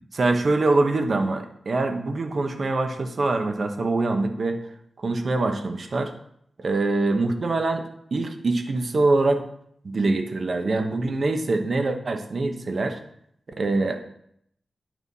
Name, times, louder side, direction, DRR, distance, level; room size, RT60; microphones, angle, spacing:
voice 1, 0.1-4.6 5.0-6.1 6.6-9.4 9.8-13.0 13.6-14.0, right 2 dB, 55° right, 5 dB, 1.0 m, -24 dB
8.9 x 5.5 x 4.1 m, 0.71 s
wide cardioid pair, 95°, 0 cm